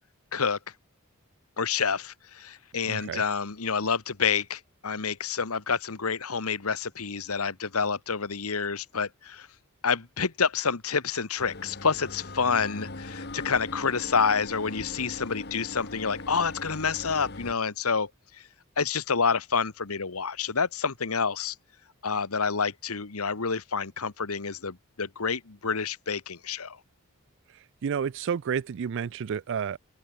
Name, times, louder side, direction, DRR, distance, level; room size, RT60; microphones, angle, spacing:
voice 1, 1.6-9.5 9.8-18.4 18.8-21.5 22.0-26.8, left 5 dB, 80° left, 1.4 m, -28 dB
voice 2, 2.9-3.2 27.8-29.8, right 7 dB, 55° right, 0.4 m, -30 dB
sound 1, 11.4-17.5, left 2 dB, 50° left, 2.3 m, -40 dB
open air
head